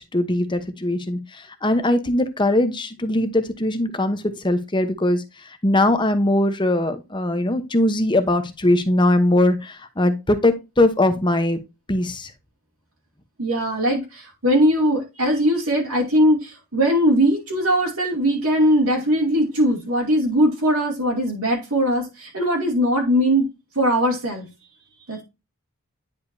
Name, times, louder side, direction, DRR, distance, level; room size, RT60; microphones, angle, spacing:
voice 1, 0.0-5.2 5.6-11.6 11.9-12.3, left 1 dB, 20° left, 0.9 m, -20 dB
voice 2, 13.4-23.5 23.7-24.5 25.1-25.2, equal, 70° right, 2.6 m, -20 dB
10.0 x 5.0 x 2.7 m
head